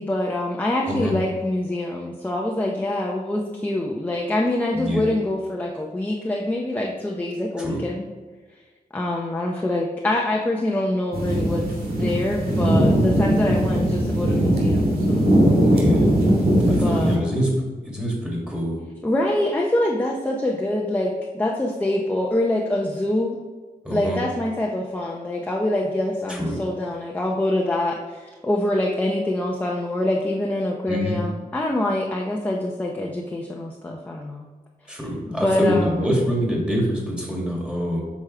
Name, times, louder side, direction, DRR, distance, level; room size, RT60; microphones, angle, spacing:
voice 1, 0.0-8.1 8.9-11.7 12.0-15.3 16.6-17.3 19.0-23.4 23.9-34.4 35.3-36.1, left 1 dB, 10° left, -1 dB, 0.7 m, -25 dB
voice 2, 4.7-5.1 7.6-7.8 15.7-16.1 16.7-17.5 17.9-18.8 23.8-24.2 26.3-26.6 30.9-31.2 34.9-38.0, equal, 5° right, -3 dB, 2.2 m, -25 dB
sound 1, 11.1-17.2, right 1 dB, 80° right, 2.0 m, -19 dB
8.5 x 6.3 x 3.3 m, 1.4 s
wide cardioid pair, 175°, 15 cm